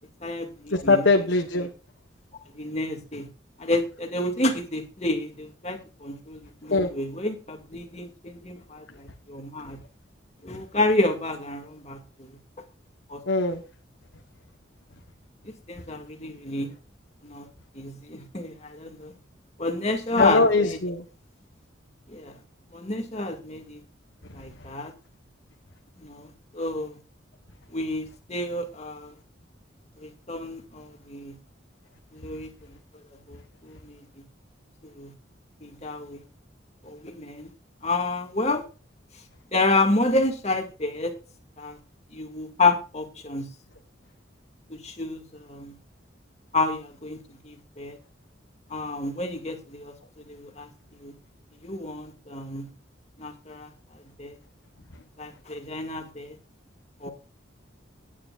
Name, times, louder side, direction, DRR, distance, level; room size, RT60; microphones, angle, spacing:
voice 1, 0.2-1.1 2.5-3.3 3.6-9.8 10.4-12.3 13.1-13.2 15.4-16.7 17.2-17.5 17.7-19.1 19.6-20.8 22.1-22.3 22.7-23.8 24.3-24.9 26.0-27.0 27.7-29.1 30.0-31.3 32.1-32.8 33.1-34.1 35.0-35.1 35.6-36.2 36.8-37.5 37.8-38.6 39.5-41.1 41.6-41.8 42.1-43.5 44.7-45.8 46.5-48.0 48.7-49.9 50.3-50.7 51.0-51.1 51.6-52.7 53.2-53.7 54.2-54.3 55.2-56.4 57.0-57.1, left 2 dB, 35° left, 4 dB, 2.3 m, -29 dB
voice 2, 0.7-1.7 6.7-6.9 13.3-13.6 20.2-21.0, left 3 dB, 65° left, 4 dB, 1.3 m, -21 dB
18.0 x 10.0 x 2.6 m, 0.34 s
head